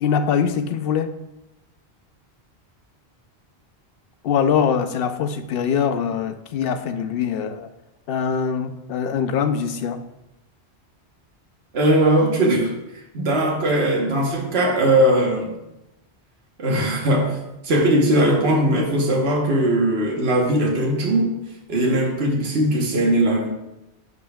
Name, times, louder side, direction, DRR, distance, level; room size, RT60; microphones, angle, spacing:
voice 1, 0.0-1.1 4.2-7.7 8.1-10.0, left 7 dB, 65° left, 9 dB, 0.7 m, -23 dB
voice 2, 11.7-12.7 13.1-15.5 16.6-17.4 17.6-21.3 21.7-23.5, right 1 dB, 70° right, -1 dB, 1.4 m, -19 dB
10.5 x 5.2 x 2.3 m, 0.93 s
omnidirectional pair, 1.1 m